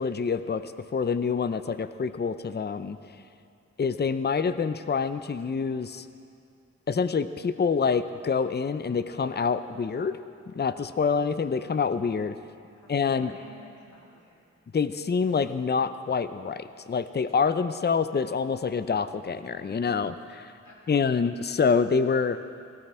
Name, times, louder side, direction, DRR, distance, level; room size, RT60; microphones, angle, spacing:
voice 1, 0.0-3.0 3.8-6.1 6.9-10.2 10.6-12.3 12.9-13.3 14.7-20.5 20.9-22.4, left 5 dB, 35° left, 12 dB, 0.6 m, -26 dB
voice 2, 12.7-14.5 20.6-21.1, equal, 80° left, -3 dB, 2.8 m, -52 dB
18.0 x 16.0 x 4.4 m, 2.5 s
cardioid pair, 50°, 30 cm